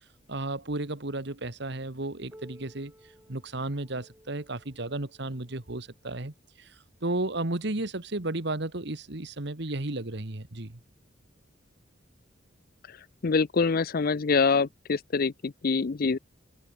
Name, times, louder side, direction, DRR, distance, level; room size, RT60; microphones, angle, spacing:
voice 1, 0.3-2.9 3.3-6.7 7.0-10.8, right 2 dB, 60° right, 1.8 m, -33 dB
Piano, 2.3-7.6 8.5-8.6 9.1-9.2 10.0-10.1 11.1-11.2, equal, 10° right, 4.5 m, -57 dB
voice 2, 13.2-16.2, left 4 dB, 50° left, 0.5 m, -25 dB
head